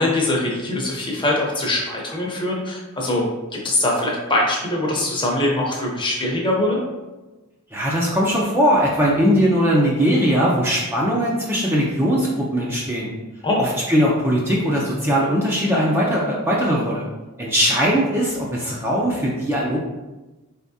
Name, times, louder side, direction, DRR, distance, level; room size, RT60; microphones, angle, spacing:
voice 1, 0.0-3.3 3.6-6.8 13.4-13.6, left 1 dB, 20° left, -2 dB, 0.8 m, -22 dB
voice 2, 7.7-13.1 13.6-17.1 17.4-19.8, equal, 10° right, -5 dB, 0.5 m, -20 dB
4.2 x 3.5 x 2.7 m, 1.1 s
head